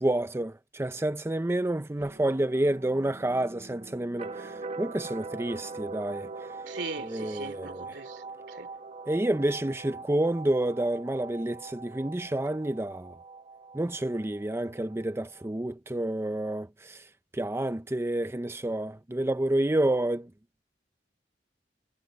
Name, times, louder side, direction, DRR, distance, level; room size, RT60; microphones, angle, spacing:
voice 1, 0.0-6.3 7.0-7.8 9.1-13.1 13.7-17.0 17.3-20.3, right 1 dB, 15° right, 0.5 m, -29 dB
sound 1, 2.0-15.5, right 3 dB, 35° right, 1.1 m, -43 dB
voice 2, 6.7-8.7, right 3 dB, 75° right, 2.7 m, -40 dB
head